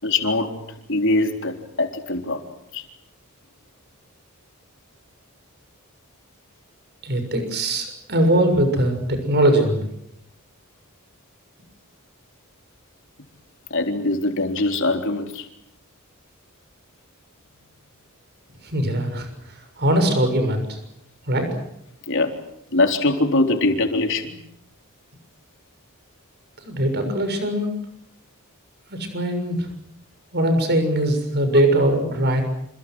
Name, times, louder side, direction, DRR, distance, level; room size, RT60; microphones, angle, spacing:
voice 1, 0.0-0.6 0.9-2.4 2.7-2.9 13.7-15.5 22.1-22.4 22.7-24.4, left 2 dB, 60° left, 4 dB, 3.9 m, -22 dB
voice 2, 7.0-9.9 18.6-19.3 19.8-20.8 21.3-21.5 26.6-27.7 28.9-29.7 30.3-32.4, right 1 dB, 50° right, 7 dB, 6.7 m, -21 dB
28.5 x 27.5 x 6.4 m, 0.75 s
head